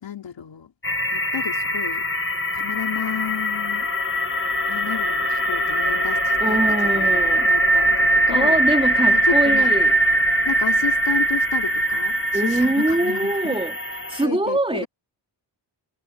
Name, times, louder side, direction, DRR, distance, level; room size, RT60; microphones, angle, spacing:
voice 1, 0.0-0.7 1.1-2.1 2.5-3.9 4.7-8.6 9.1-9.7 10.4-13.6 14.2-14.9, left 8 dB, 80° left, 4.5 m, -32 dB
sound 1, 0.8-14.3, right 1 dB, 30° left, 1.6 m, -21 dB
voice 2, 6.4-7.5 8.3-10.0 12.3-13.7 14.1-14.9, right 2 dB, 10° right, 4.0 m, -23 dB
wide cardioid pair, 170°, 44 cm